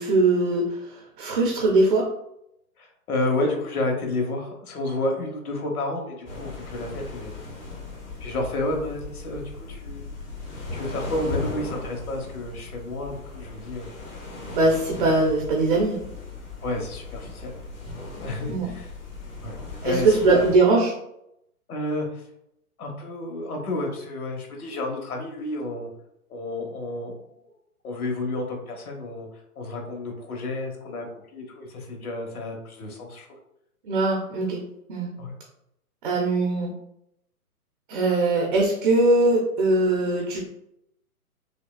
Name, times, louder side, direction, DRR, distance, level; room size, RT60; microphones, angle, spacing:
voice 1, 0.0-2.1 14.5-16.0 18.5-18.7 19.8-20.9 33.8-34.6 34.9-35.1 36.0-36.7 37.9-40.4, right 2 dB, 35° right, -1 dB, 0.7 m, -21 dB
voice 2, 2.8-7.3 8.2-10.1 10.7-13.9 15.0-15.1 16.6-17.5 18.2-18.9 19.4-19.6 19.8-20.4 21.7-22.2 22.8-25.9 26.3-27.5 27.8-29.3 29.6-33.3 35.2-35.3, left 2 dB, 75° left, 1 dB, 1.3 m, -30 dB
sound 1, 6.3-20.6, left 3 dB, 30° left, 1.4 m, -37 dB
5.6 x 2.3 x 2.3 m, 0.78 s
hypercardioid pair, 150°, 45 cm